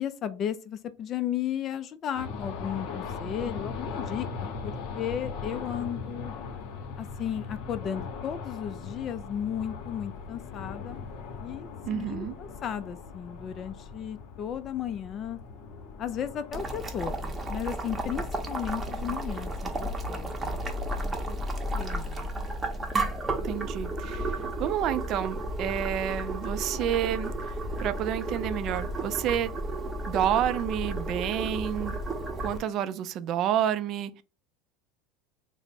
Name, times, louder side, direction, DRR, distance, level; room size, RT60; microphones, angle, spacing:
voice 1, 0.0-4.3 4.6-6.3 7.0-11.0 11.4-15.4 16.0-20.6 21.0-22.3, left 9 dB, 40° left, 0.3 m, -35 dB
sound 1, 2.2-21.8, left 5 dB, 60° left, 0.7 m, -40 dB
voice 2, 11.8-12.4 23.4-24.3 24.6-27.3 27.8-29.5 30.1-32.0 32.4-34.2, right 10 dB, 50° right, 0.4 m, -29 dB
Boiling, 16.5-32.6, right 1 dB, 20° right, 0.8 m, -33 dB
sound 2, 24.3-29.1, left 1 dB, 15° left, 0.8 m, -53 dB
3.3 x 2.0 x 4.0 m
supercardioid pair, 105°, 0 cm